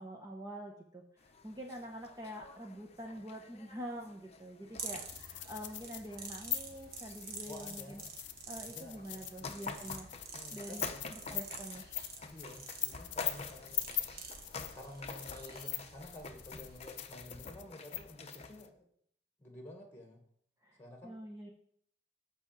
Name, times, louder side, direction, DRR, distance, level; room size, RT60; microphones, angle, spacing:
voice 1, 0.0-8.0 8.5-10.1 10.5-11.9 20.6-21.5, equal, 20° right, 0 dB, 1.0 m, -46 dB
sound 1, 1.2-18.7, left 4 dB, 35° left, 0.8 m, -49 dB
sound 2, 4.8-17.1, right 5 dB, 55° right, 1.4 m, -49 dB
sound 3, 5.1-18.7, left 15 dB, 70° left, 0.7 m, -41 dB
voice 2, 7.5-8.1 8.5-9.9 10.3-11.1 12.3-13.9 14.7-18.9 19.4-20.2 20.8-21.1, left 1 dB, 10° left, 2 dB, 1.6 m, -51 dB
8.6 x 4.9 x 7.3 m, 0.65 s
head